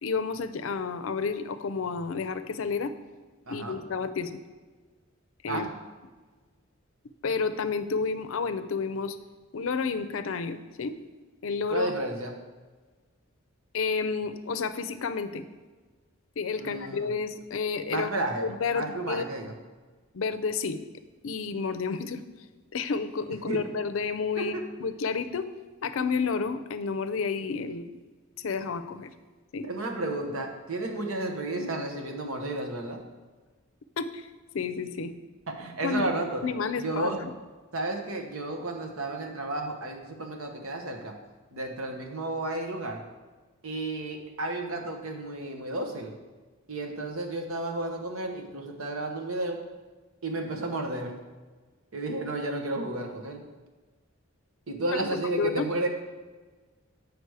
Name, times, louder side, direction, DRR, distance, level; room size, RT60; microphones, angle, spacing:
voice 1, 0.0-2.9 3.5-4.4 5.4-5.7 7.2-9.2 9.5-11.0 11.4-11.9 13.7-15.5 16.4-18.1 18.4-19.3 20.1-20.8 21.2-22.2 22.7-24.5 24.8-25.5 25.8-27.9 28.4-29.1 29.5-29.6 34.0-34.2 34.5-35.1 35.8-36.1 36.4-37.3 55.4-55.7, left 5 dB, 70° left, 11 dB, 0.5 m, -30 dB
voice 2, 3.5-3.8 5.5-5.7 11.7-12.4 16.6-17.1 17.9-19.5 23.5-23.7 24.4-24.7 29.6-33.0 35.5-36.4 36.8-37.2 37.7-41.2 41.5-43.0 43.6-46.2 46.7-49.6 50.2-51.2 51.9-53.5 54.7-55.9, right 2 dB, 80° right, 3 dB, 1.1 m, -32 dB
8.0 x 5.0 x 4.8 m, 1.3 s
head